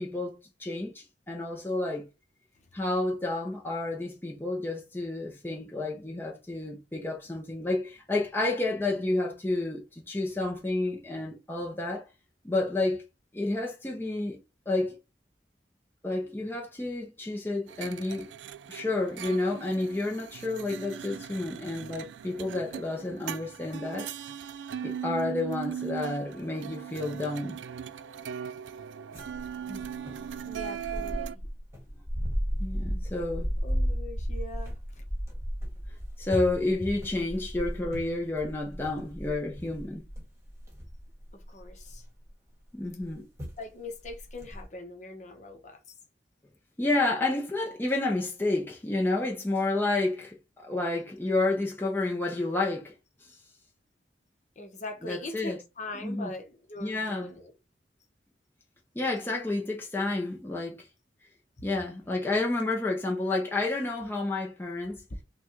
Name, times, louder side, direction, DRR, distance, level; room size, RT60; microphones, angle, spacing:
voice 1, 0.0-2.1 2.7-12.0 12.4-13.0 13.3-14.4 14.7-15.0 16.0-18.3 18.7-24.1 24.8-27.6 29.7-29.8 32.6-33.5 36.2-40.0 42.7-43.3 46.8-52.9 53.2-53.3 55.0-55.6 56.0-56.3 56.8-57.3 58.9-60.9 61.6-65.0, left 2 dB, 10° left, 0.6 m, -30 dB
sound 1, 17.7-31.4, right 8 dB, 90° right, 0.3 m, -39 dB
sound 2, 29.1-42.3 43.0-43.1 43.4-43.6 44.0-44.6, equal, 15° right, 1.6 m, -35 dB
voice 2, 30.4-31.4 33.6-35.0 41.3-42.1 43.6-45.9 53.3-53.4 54.6-57.5 61.6-61.7, left 2 dB, 40° left, 0.9 m, -42 dB
5.9 x 2.3 x 3.0 m
head